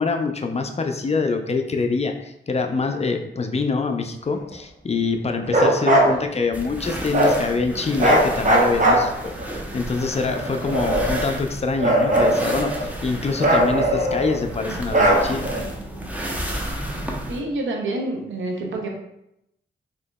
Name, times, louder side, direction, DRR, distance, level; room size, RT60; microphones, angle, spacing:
voice 1, 0.0-15.5, left 4 dB, 35° left, 5 dB, 0.4 m, -25 dB
Bark, 5.5-6.1 7.1-7.4 8.0-9.4 10.2-11.3 11.8-12.9 13.4-14.4 14.9-15.6, right 1 dB, 40° right, 0.9 m, -19 dB
sound 1, 6.5-17.4, right 1 dB, 10° right, 0.7 m, -32 dB
voice 2, 17.3-18.9, right 2 dB, 80° right, 1 dB, 0.6 m, -27 dB
3.7 x 2.8 x 2.2 m, 0.81 s
cardioid pair, 50°, 20 cm